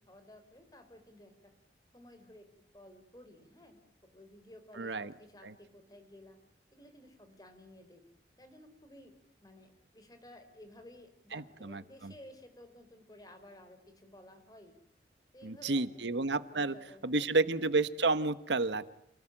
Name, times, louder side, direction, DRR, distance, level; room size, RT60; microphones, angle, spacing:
voice 1, 0.1-1.5 1.9-2.5 2.7-6.4 6.7-8.0 8.4-9.1 9.4-14.7 15.3-16.2 16.5-17.8, left 1 dB, 20° left, 7 dB, 4.2 m, -55 dB
voice 2, 4.8-5.1 5.4-5.5 11.3-12.1 15.4-16.7 17.0-18.9, right 3 dB, 85° right, 14 dB, 1.2 m, -31 dB
28.0 x 19.0 x 8.9 m, 0.79 s
head